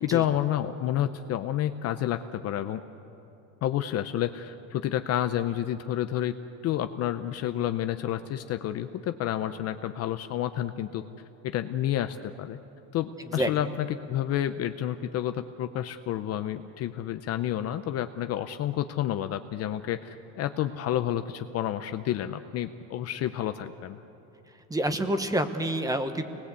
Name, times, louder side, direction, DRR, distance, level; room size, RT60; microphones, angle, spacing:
voice 1, 0.0-2.8 3.6-6.4 6.6-11.0 11.4-12.6 12.9-24.0, left 11 dB, 35° left, 10 dB, 0.6 m, -30 dB
voice 2, 24.7-26.3, right 1 dB, 10° right, 8 dB, 1.0 m, -28 dB
27.5 x 20.0 x 8.2 m, 2.9 s
cardioid pair, 155°, 42 cm